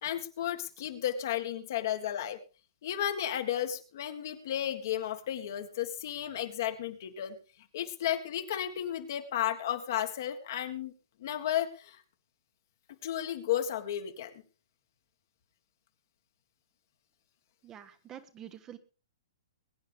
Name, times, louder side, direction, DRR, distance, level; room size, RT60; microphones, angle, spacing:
voice 1, 0.0-2.4 2.8-7.4 7.7-10.9 11.2-12.0 13.0-14.3, left 11 dB, 55° left, 6 dB, 1.8 m, -33 dB
voice 2, 17.6-18.8, right 10 dB, 25° right, 10 dB, 1.2 m, -47 dB
22.0 x 9.4 x 3.5 m, 0.33 s
hypercardioid pair, 120°, 2 cm